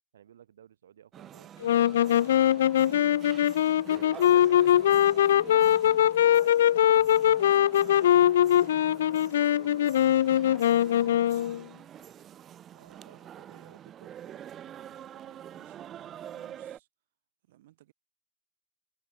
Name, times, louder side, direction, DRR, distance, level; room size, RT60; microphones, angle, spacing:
voice 1, 0.1-5.8 6.4-7.0 12.8-15.4, right 10 dB, 85° right, 6.7 m, -57 dB
sound 1, 1.1-16.8, right 10 dB, 20° right, 3.2 m, -46 dB
sound 2, 1.6-11.6, left 11 dB, 70° left, 0.3 m, -22 dB
sound 3, 4.0-4.4 4.9-5.4 5.8-6.3 7.0-7.4 8.1-8.4 9.9-10.2 10.9-11.3 12.0-12.2 12.9-13.2, equal, ahead, 7.2 m, -68 dB
voice 2, 6.0-7.0 7.5-9.8 11.0-11.8 12.7-13.3 15.3-16.9 17.4-17.9, right 15 dB, 55° right, 8.0 m, -59 dB
supercardioid pair, 170°, 0 cm